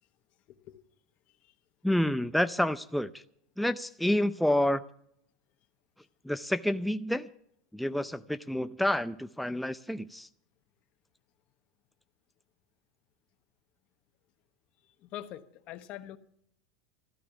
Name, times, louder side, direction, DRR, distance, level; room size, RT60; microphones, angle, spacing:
voice 1, 0.5-0.8 1.4-1.5 15.0-16.2, left 13 dB, 50° left, 1.1 m, -44 dB
voice 2, 1.8-3.1 3.6-4.8 6.2-7.3 7.7-10.3, left 1 dB, ahead, 0.5 m, -28 dB
13.5 x 12.0 x 7.0 m
supercardioid pair, 115°, 3 cm